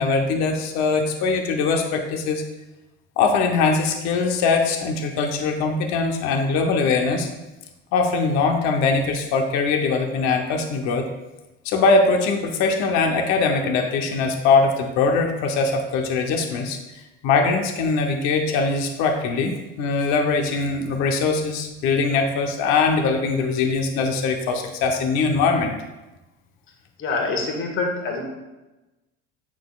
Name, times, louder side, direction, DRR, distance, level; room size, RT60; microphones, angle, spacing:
voice 1, 0.0-2.4 3.2-7.3 7.9-11.0 11.6-16.8 17.2-25.7, left 4 dB, 65° left, 3 dB, 1.0 m, -21 dB
voice 2, 27.0-28.2, left 3 dB, 45° left, 1 dB, 1.8 m, -25 dB
8.3 x 6.1 x 2.4 m, 1.0 s
cardioid pair, 120°, 30 cm